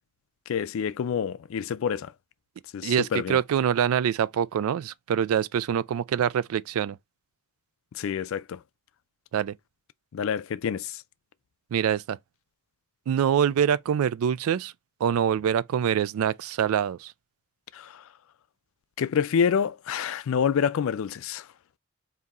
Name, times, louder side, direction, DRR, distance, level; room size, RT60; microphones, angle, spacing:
voice 1, 0.5-2.1 2.7-3.4 8.0-8.6 10.1-10.9 17.7-17.9 19.0-21.4, left 7 dB, 70° left, 0.3 m, -27 dB
voice 2, 2.8-7.0 9.3-9.5 11.7-12.2 13.1-14.7 15.0-17.1, right 8 dB, 80° right, 0.3 m, -25 dB
3.6 x 2.8 x 4.0 m
head